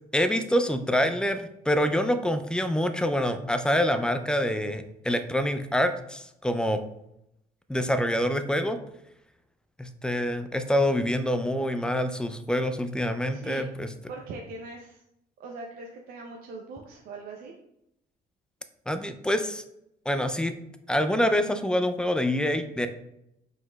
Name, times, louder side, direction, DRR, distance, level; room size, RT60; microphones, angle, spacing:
voice 1, 0.1-6.8 7.7-8.8 9.8-13.9 18.9-19.6 20.1-20.5 20.9-22.9, equal, 5° left, 9 dB, 0.3 m, -26 dB
voice 2, 13.3-13.6 14.1-15.0 15.4-17.5, right 3 dB, 65° right, 1 dB, 0.6 m, -41 dB
4.9 x 3.9 x 2.2 m, 0.81 s
cardioid pair, 110°, 17 cm